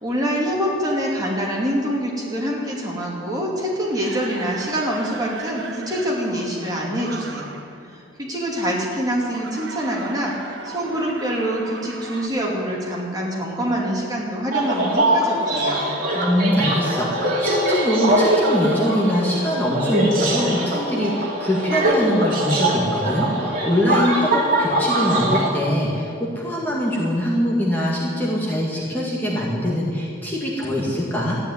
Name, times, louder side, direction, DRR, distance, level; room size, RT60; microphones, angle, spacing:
voice 1, 0.0-7.5 7.9-16.0, equal, 20° right, -3 dB, 2.7 m, -25 dB
sound 1, 3.6-7.8 9.2-12.3, right 3 dB, 60° right, 1.2 m, -38 dB
sound 2, 14.5-25.5, right 1 dB, 45° right, 2.6 m, -22 dB
voice 2, 16.1-31.4, equal, 10° left, -5 dB, 2.0 m, -23 dB
13.5 x 10.0 x 9.6 m, 2.5 s
head